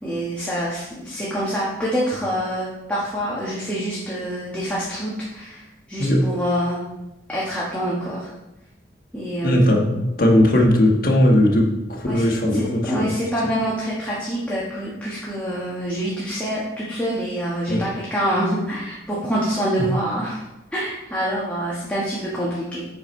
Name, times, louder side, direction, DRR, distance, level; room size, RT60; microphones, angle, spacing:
voice 1, 0.0-5.6 5.9-6.8 7.3-8.3 9.1-9.7 12.1-12.3 12.5-20.4 20.7-22.8, equal, 10° left, -7 dB, 1.3 m, -26 dB
voice 2, 9.4-13.1 17.7-17.8, left 1 dB, 50° left, 0 dB, 1.4 m, -18 dB
7.9 x 5.6 x 4.4 m, 0.95 s
head